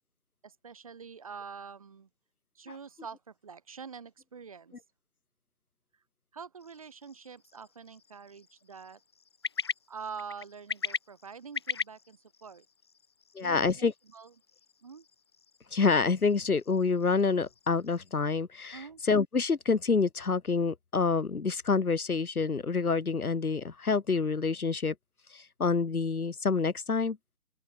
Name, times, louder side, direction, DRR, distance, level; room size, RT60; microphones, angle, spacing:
voice 1, 0.4-2.1 2.6-4.7 6.3-9.0 9.9-12.6 13.4-14.4 14.8-15.1 18.7-19.0, right 6 dB, 25° right, 5.6 m, -45 dB
sound 1, 6.6-18.3, left 6 dB, 20° left, 2.9 m, -42 dB
voice 2, 13.4-13.9 15.7-18.8 19.1-24.9 25.3-27.2, left 4 dB, 85° left, 1.9 m, -27 dB
open air
figure-of-eight pair, 175°, 43 cm